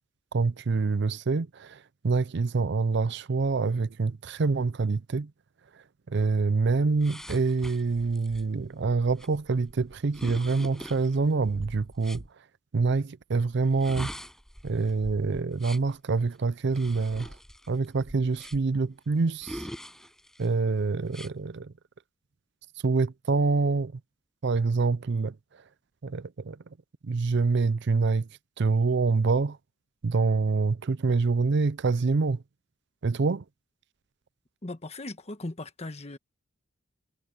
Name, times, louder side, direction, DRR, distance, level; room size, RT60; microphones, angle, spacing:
voice 1, 0.3-5.3 6.1-12.2 12.7-14.1 14.6-17.3 17.7-19.7 20.4-21.7 22.8-23.9 24.4-25.3 26.0-26.6 27.0-28.3 28.6-29.6 30.0-32.4 33.0-33.4, right 4 dB, 60° right, 0.5 m, -26 dB
sound 1, 7.0-12.3 13.6-16.0 16.7-18.8 19.4-20.5 21.1-21.3, equal, 5° left, 6.1 m, -43 dB
voice 2, 34.6-36.2, left 2 dB, 35° left, 1.3 m, -38 dB
head